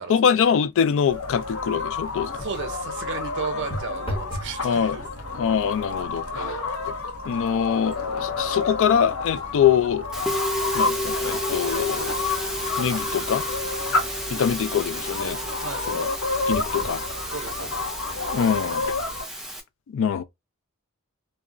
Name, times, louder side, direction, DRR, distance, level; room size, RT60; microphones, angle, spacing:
voice 1, 0.1-2.3 4.6-5.0 5.4-6.2 6.9-7.0 7.2-10.0 10.7-12.2 12.8-13.4 14.3-15.4 15.9-16.0 16.5-17.0 18.3-18.8 19.9-20.2, left 8 dB, 60° left, 0.3 m, -23 dB
sound 1, 1.1-19.2, left 3 dB, 90° left, 0.7 m, -30 dB
voice 2, 2.3-5.0 6.3-6.6 13.9-14.2 15.6-15.9 17.3-18.0, right 5 dB, 55° right, 0.7 m, -35 dB
sound 2, 2.4-2.8 3.7-4.6 5.0-5.5 6.2-6.3 6.7-10.3 10.8-10.9 11.6-14.3 16.5-17.0 17.7-17.8 18.1-18.2, equal, 25° left, 0.8 m, -39 dB
Musical instrument, 10.1-19.6, equal, ahead, 0.5 m, -31 dB
2.3 x 2.1 x 3.6 m
head